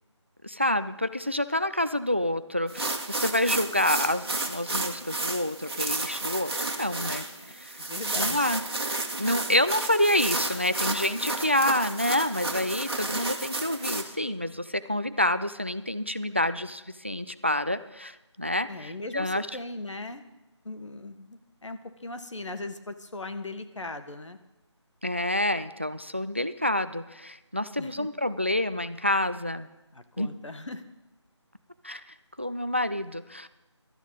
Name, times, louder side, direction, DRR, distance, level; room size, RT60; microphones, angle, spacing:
voice 1, 0.4-7.8 8.2-8.6 9.2-19.5 25.0-29.7 30.2-30.3 31.8-32.0 32.4-33.5, left 1 dB, 25° right, 13 dB, 0.3 m, -28 dB
sound 1, 2.7-14.0, right 2 dB, 55° right, 1.8 m, -32 dB
voice 2, 7.9-8.5 18.7-20.3 20.6-24.4 27.8-28.1 29.9-30.8, left 2 dB, 80° left, 8 dB, 1.5 m, -39 dB
17.0 x 12.5 x 4.0 m, 1.0 s
figure-of-eight pair, 175°, 15 cm